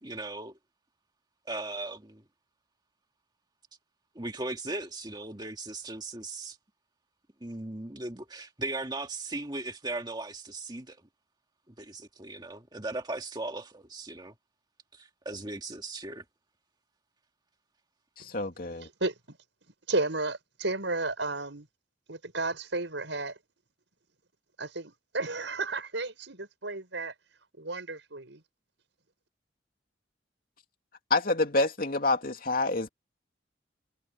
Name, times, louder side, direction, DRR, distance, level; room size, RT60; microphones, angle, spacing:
voice 1, 0.0-0.5 1.5-2.2 4.2-6.6 7.4-11.0 11.7-14.3 14.9-16.2, right 2 dB, 25° right, 1.9 m, -38 dB
voice 2, 18.2-18.9 31.1-32.9, left 2 dB, 50° left, 2.8 m, -27 dB
voice 3, 18.8-19.4 19.9-21.7 22.1-23.4 24.6-27.1 27.6-28.4, right 2 dB, 80° right, 5.7 m, -33 dB
head